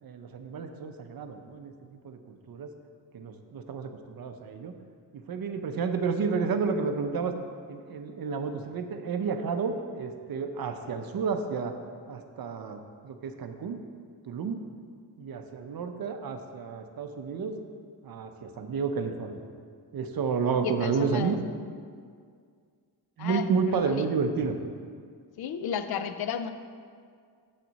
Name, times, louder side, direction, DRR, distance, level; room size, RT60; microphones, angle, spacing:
voice 1, 0.0-1.7 2.0-2.7 3.1-4.7 5.1-7.3 7.7-11.8 12.1-13.8 14.3-14.6 15.2-17.6 18.0-19.4 19.9-21.4 23.2-24.6, right 5 dB, 50° right, 7 dB, 0.6 m, -31 dB
voice 2, 20.6-21.4 23.2-24.1 25.4-26.5, left 7 dB, 55° left, 10 dB, 0.5 m, -33 dB
7.4 x 7.3 x 4.0 m, 2.1 s
wide cardioid pair, 135°, 45 cm